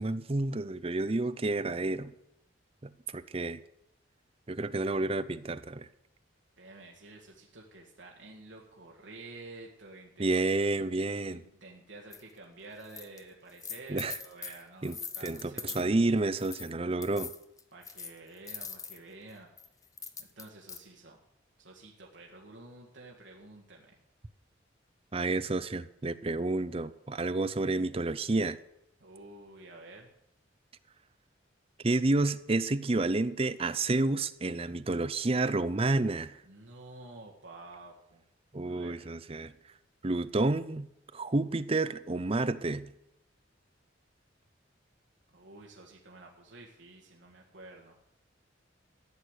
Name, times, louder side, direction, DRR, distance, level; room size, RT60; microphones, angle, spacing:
voice 1, 0.0-2.1 2.8-3.6 4.5-5.9 10.2-11.4 13.9-14.2 14.8-15.0 15.2-17.3 25.1-28.6 31.8-36.4 38.5-39.5 40.0-40.9 41.1-42.9, right 2 dB, 30° right, 0.6 m, -30 dB
voice 2, 6.6-10.3 11.3-15.9 17.7-19.5 20.2-21.2 21.6-23.9 29.0-30.1 36.5-38.2 38.6-39.0 45.3-48.0, right 2 dB, 70° right, 1.9 m, -50 dB
sound 1, 12.1-12.2 12.8-13.2 13.5-15.9 16.4-16.7 17.0-19.0 19.6-20.8, left 6 dB, 15° left, 0.8 m, -42 dB
14.5 x 6.5 x 9.9 m
head